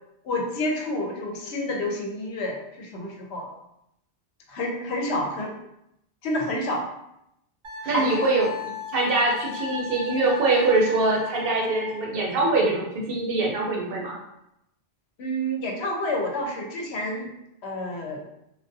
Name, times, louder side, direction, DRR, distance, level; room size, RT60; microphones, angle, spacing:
voice 1, 0.2-3.5 4.5-5.5 6.2-6.9 7.8-8.3 15.2-17.3 17.6-18.2, left 1 dB, 80° left, 1 dB, 0.9 m, -29 dB
Wind instrument woodwind instrument, 7.6-12.1, left 4 dB, 45° right, 0.4 m, -36 dB
voice 2, 7.9-14.1, right 2 dB, 65° right, -2 dB, 0.8 m, -23 dB
2.3 x 2.2 x 2.6 m, 0.81 s
omnidirectional pair, 1.1 m